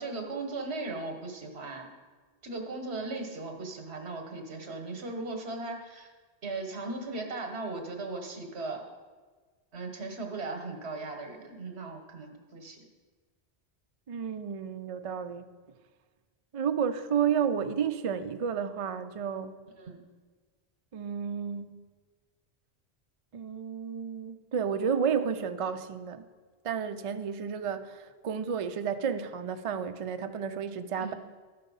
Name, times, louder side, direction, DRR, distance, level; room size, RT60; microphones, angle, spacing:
voice 1, 0.0-1.9 2.4-6.1 6.4-8.8 9.7-12.8 19.8-20.0 31.0-31.1, right 3 dB, 75° right, 4 dB, 1.4 m, -37 dB
voice 2, 14.1-15.5 16.5-19.6 20.9-21.8 23.3-26.2 26.6-31.1, right 7 dB, 50° right, 9 dB, 0.4 m, -31 dB
12.5 x 5.4 x 5.4 m, 1.4 s
omnidirectional pair, 1.1 m